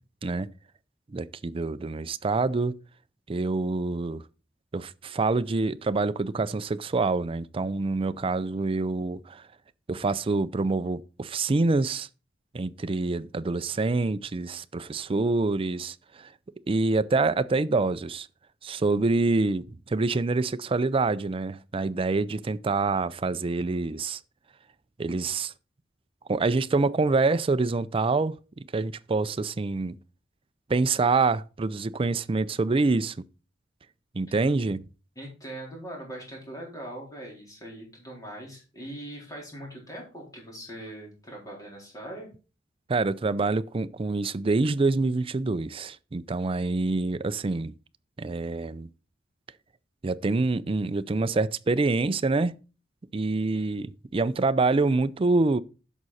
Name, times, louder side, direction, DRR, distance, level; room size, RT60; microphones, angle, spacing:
voice 1, 1.1-2.8 3.3-4.2 4.7-9.4 9.9-12.1 12.5-16.3 16.7-18.3 18.6-24.2 25.0-25.5 26.3-29.9 30.7-33.1 34.1-34.8 42.9-47.7 48.2-48.9 50.0-52.5 53.1-55.6, right 3 dB, 30° right, 0.4 m, -26 dB
voice 2, 35.2-42.3 53.5-53.8, right 1 dB, 20° left, 4.1 m, -41 dB
11.0 x 6.3 x 4.2 m
head